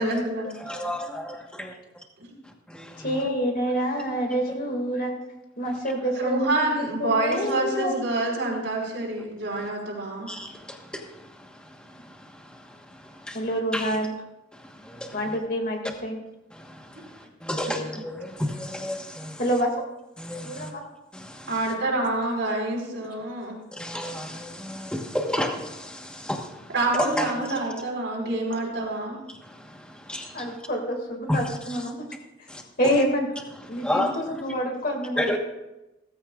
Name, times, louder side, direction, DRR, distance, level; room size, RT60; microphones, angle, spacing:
voice 1, 0.0-0.4 6.1-10.3 21.5-23.5 26.7-29.2, right 2 dB, 70° right, -2 dB, 5.2 m, -27 dB
voice 2, 0.6-1.7 2.4-3.2 9.6-9.7 10.3-14.0 14.5-15.4 16.5-19.4 20.2-20.7 21.1-21.7 23.7-27.6 28.5-28.6 29.3-30.6 31.3-31.8 32.5-32.6 33.7-34.1 35.2-35.4, left 1 dB, 5° left, 2 dB, 1.2 m, -33 dB
voice 3, 3.0-5.1 5.6-8.1 13.3-14.1 15.1-16.2 19.4-19.7 20.4-20.8 30.3-32.1 32.4-32.5 32.8-33.3 33.7-35.3, equal, 45° left, 2 dB, 2.2 m, -27 dB
17.5 x 14.5 x 2.4 m, 0.99 s
head